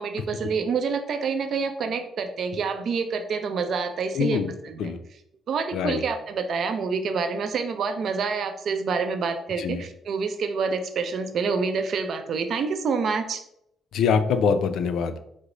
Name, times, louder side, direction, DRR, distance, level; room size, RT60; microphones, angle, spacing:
voice 1, 0.0-4.9 5.5-13.4, right 5 dB, 60° right, 8 dB, 0.5 m, -27 dB
voice 2, 4.1-4.5 4.8-5.0 5.7-6.0 9.6-9.8 13.9-15.1, left 6 dB, 80° left, 10 dB, 0.4 m, -24 dB
4.7 x 2.0 x 3.8 m, 0.75 s
cardioid pair, 90°, 0 cm